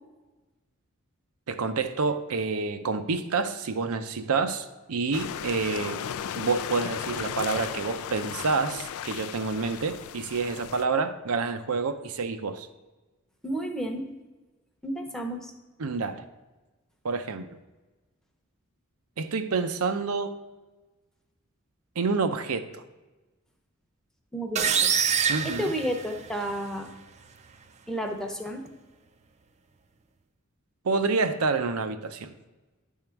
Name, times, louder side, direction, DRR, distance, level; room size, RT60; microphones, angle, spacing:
voice 1, 1.5-6.0 6.4-12.7 15.8-16.2 17.0-17.5 19.2-20.4 22.0-22.8 25.3-25.7 30.8-32.3, right 4 dB, 90° right, 9 dB, 0.6 m, -28 dB
sound 1, 5.1-10.8, left 9 dB, 75° left, 0.3 m, -36 dB
voice 2, 13.4-14.1 14.8-15.5 24.3-25.0 25.4-26.9 27.9-28.6, equal, 5° left, 2 dB, 0.7 m, -31 dB
sound 2, 24.6-26.5, right 7 dB, 30° right, 0.4 m, -25 dB
10.5 x 3.7 x 4.5 m, 1.2 s
head